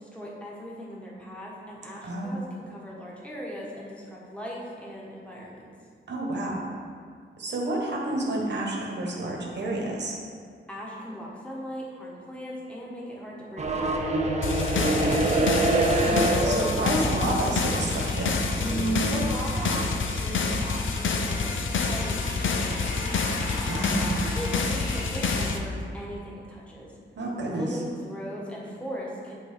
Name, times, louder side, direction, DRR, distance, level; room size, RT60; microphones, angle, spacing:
voice 1, 0.0-5.7 10.7-13.8 19.1-23.1 24.3-26.9 27.5-29.3, equal, 5° left, -4 dB, 1.2 m, -39 dB
voice 2, 2.0-2.4 6.1-6.6 7.4-10.1 14.8-15.2 15.9-18.4 23.6-24.3 27.2-27.7, right 1 dB, 60° right, -2 dB, 1.2 m, -30 dB
sound 1, 13.6-20.8, right 2 dB, 35° right, 0.6 m, -27 dB
sound 2, 14.4-25.6, left 4 dB, 80° left, 0.6 m, -28 dB
sound 3, 16.2-16.3 16.7-25.4, equal, 55° left, 1.7 m, -35 dB
8.6 x 3.7 x 5.0 m, 2.1 s
wide cardioid pair, 155°, 20 cm